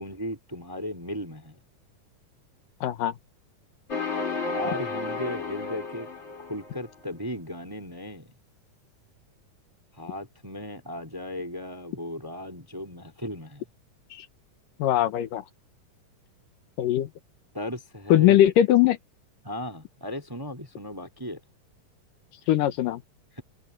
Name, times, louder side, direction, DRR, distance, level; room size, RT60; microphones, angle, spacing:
voice 1, 0.0-1.6 4.3-6.1 6.4-8.3 10.0-13.7 17.5-18.5 19.4-21.4 23.4-23.5, left 1 dB, 10° right, 1.8 m, -36 dB
voice 2, 2.8-3.1 14.2-14.3 14.8-15.4 16.8-17.1 18.1-19.0 22.5-23.0, left 12 dB, 75° left, 2.7 m, -20 dB
sound 1, 3.9-6.9, left 4 dB, 30° left, 5.6 m, -32 dB
open air
omnidirectional pair, 3.9 m